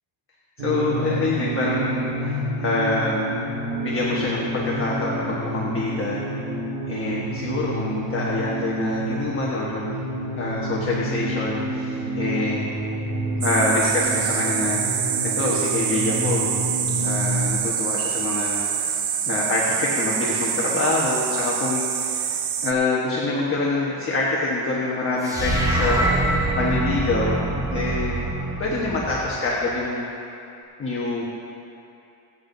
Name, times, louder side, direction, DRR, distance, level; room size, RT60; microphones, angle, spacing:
voice 1, 0.6-3.4 3.8-6.2 6.9-9.9 10.3-12.6 13.4-14.8 15.3-16.5 17.0-18.9 19.3-22.3 22.6-26.0 26.6-27.4 27.7-28.2 28.6-30.0 30.8-31.2, left 2 dB, 25° left, -5 dB, 1.2 m, -25 dB
sound 1, 0.6-17.5, right 1 dB, 75° right, 1.5 m, -29 dB
sound 2, 13.4-22.7, right 8 dB, 55° right, 0.8 m, -26 dB
sound 3, 25.2-29.6, right 1 dB, 5° right, 0.9 m, -24 dB
24.0 x 8.4 x 2.7 m, 2.7 s
cardioid pair, 175°, 47 cm